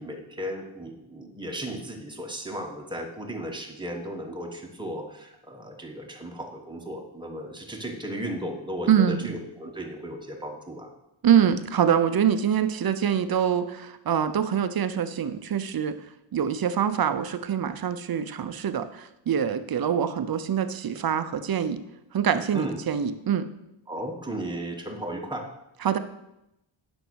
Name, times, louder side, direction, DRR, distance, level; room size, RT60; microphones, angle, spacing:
voice 1, 0.0-10.9 22.5-22.8 23.9-25.5, equal, 10° right, 1 dB, 1.4 m, -35 dB
voice 2, 8.9-9.3 11.2-16.0 16.3-21.8 22.1-23.5 25.8-26.0, right 8 dB, 45° right, 11 dB, 0.7 m, -25 dB
9.9 x 6.3 x 6.3 m, 0.86 s
wide cardioid pair, 165°, 48 cm